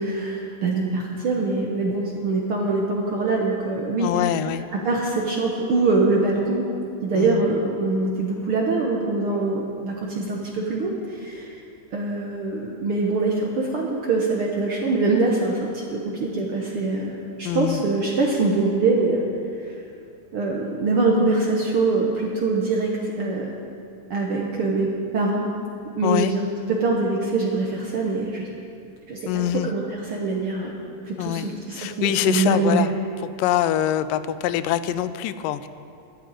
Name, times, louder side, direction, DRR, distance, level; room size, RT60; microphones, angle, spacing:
voice 1, 0.0-4.1 4.8-6.6 7.0-11.5 11.9-19.2 19.6-19.7 20.3-23.5 24.1-24.9 25.1-25.5 26.0-26.5 26.8-28.5 29.1-29.8 30.1-30.7 31.1-32.9, right 3 dB, 65° right, -1 dB, 1.4 m, -23 dB
voice 2, 4.0-4.6 7.2-7.4 17.4-17.8 26.0-26.3 29.3-29.7 31.2-32.9 33.2-35.7, left 11 dB, 85° left, 13 dB, 2.2 m, -24 dB
11.5 x 9.1 x 8.8 m, 2.5 s
omnidirectional pair, 3.8 m